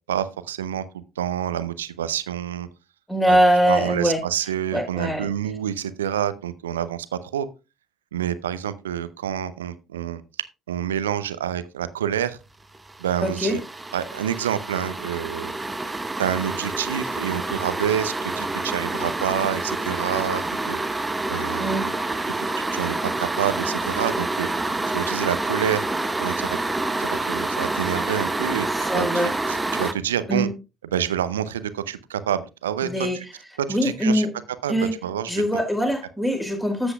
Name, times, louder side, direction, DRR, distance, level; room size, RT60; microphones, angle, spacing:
voice 1, 0.1-0.8 1.2-2.7 3.3-3.4 3.7-7.1 7.3-7.5 8.1-10.2 10.7-12.4 13.0-13.6 13.9-15.5 16.2-20.8 21.3-21.9 22.4-22.5 22.7-24.5 24.9-25.8 26.2-26.6 27.0-28.7 28.9-30.5 30.9-32.9 33.6-34.3 34.6-34.7 35.0-35.4, right 9 dB, 80° right, 14 dB, 0.6 m, -27 dB
voice 2, 3.1-4.2 4.7-5.3 13.2-13.6 21.6-21.9 28.7-29.3 30.3-30.5 32.8-33.2 33.7-34.3 34.7-35.0 35.3-36.9, equal, 5° left, 2 dB, 4.5 m, -22 dB
sound 1, 12.7-29.9, right 2 dB, 15° right, 1.0 m, -28 dB
13.0 x 8.0 x 2.4 m, 0.28 s
figure-of-eight pair, 55°, 0 cm